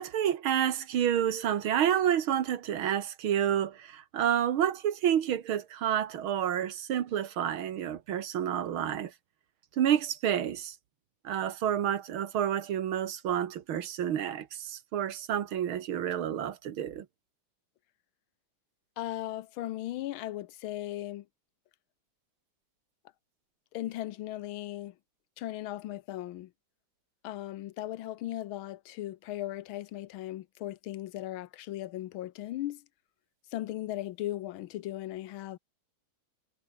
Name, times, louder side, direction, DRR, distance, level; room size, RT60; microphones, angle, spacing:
voice 1, 0.0-9.1 9.8-10.7 11.2-17.1, right 10 dB, 85° right, 2.2 m, -29 dB
voice 2, 19.0-21.2 23.7-24.9 25.4-26.5 27.2-32.8 33.5-35.6, left 14 dB, 85° left, 1.6 m, -37 dB
omnidirectional pair, 2.2 m